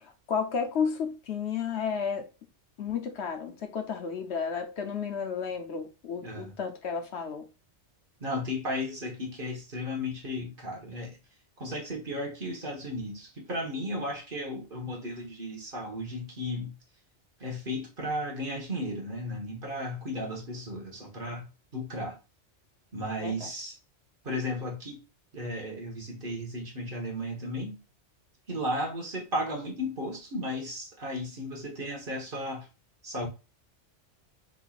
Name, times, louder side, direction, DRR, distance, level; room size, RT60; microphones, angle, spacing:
voice 1, 0.0-2.3 2.8-7.5 23.2-23.5, left 6 dB, 65° left, 1.0 m, -32 dB
voice 2, 8.2-11.2 11.6-16.7 17.4-22.2 22.9-23.7 24.2-25.0 25.3-27.8 28.5-32.7 33.0-33.3, left 1 dB, 45° right, 1.6 m, -34 dB
5.6 x 3.9 x 2.4 m
omnidirectional pair, 1.2 m